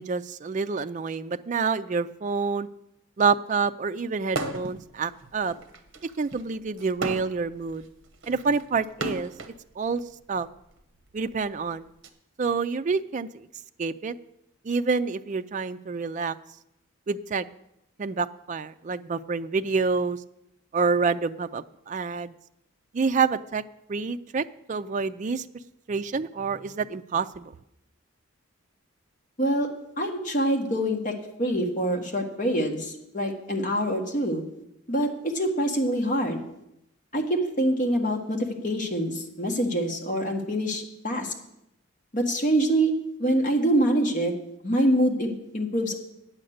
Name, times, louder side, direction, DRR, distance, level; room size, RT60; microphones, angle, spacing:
voice 1, 0.0-2.7 3.2-5.5 6.2-7.9 8.3-9.3 9.8-10.0 10.3-10.5 11.1-11.9 12.4-13.5 13.8-14.1 14.6-16.4 17.1-17.5 18.0-20.2 20.7-22.3 22.9-23.6 23.9-25.4 25.9-27.4, right 4 dB, 35° right, 10 dB, 0.3 m, -27 dB
sound 1, 4.3-4.8 5.2-9.6 10.5-12.1, right 2 dB, 60° right, 1.0 m, -35 dB
voice 2, 29.4-29.7 30.0-34.4 34.9-36.4 37.1-41.3 42.1-44.3 44.6-46.0, right 1 dB, 40° left, 2 dB, 1.4 m, -25 dB
8.9 x 8.6 x 6.4 m, 0.82 s
head